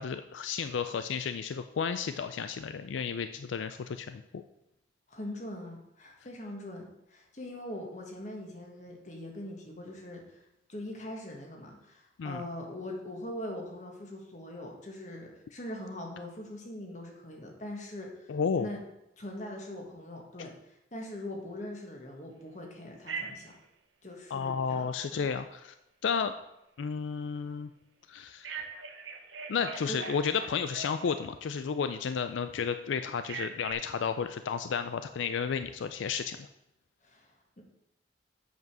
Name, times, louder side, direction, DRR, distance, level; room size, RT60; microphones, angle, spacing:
voice 1, 0.0-4.4 12.2-12.4 18.3-18.7 24.3-25.7 26.0-26.3 26.8-27.7 28.1-28.6 29.5-36.5, left 6 dB, 85° left, 10 dB, 0.4 m, -32 dB
voice 2, 5.1-10.4 10.7-18.8 19.2-23.5 24.0-25.2 29.9-30.0 37.0-37.6, left 1 dB, 40° left, 1 dB, 1.6 m, -42 dB
Telephone, 23.1-23.6 28.4-31.3 33.2-33.7, right 5 dB, 90° right, 0.9 m, -41 dB
8.1 x 5.0 x 6.0 m, 0.86 s
head